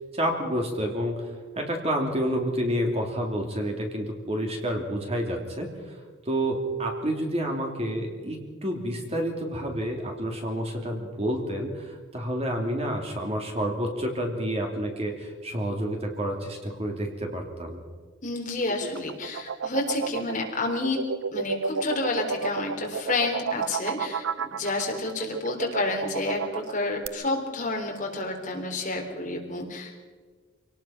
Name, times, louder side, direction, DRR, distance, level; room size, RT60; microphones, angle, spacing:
voice 1, 0.1-1.2 1.6-5.7 6.3-17.8, equal, 30° right, 2 dB, 3.0 m, -29 dB
voice 2, 18.2-21.0 21.3-29.9, left 2 dB, 35° left, 1 dB, 3.7 m, -29 dB
sound 1, 18.6-27.1, right 5 dB, 70° right, 0.5 m, -32 dB
26.5 x 18.5 x 5.9 m, 1.5 s
head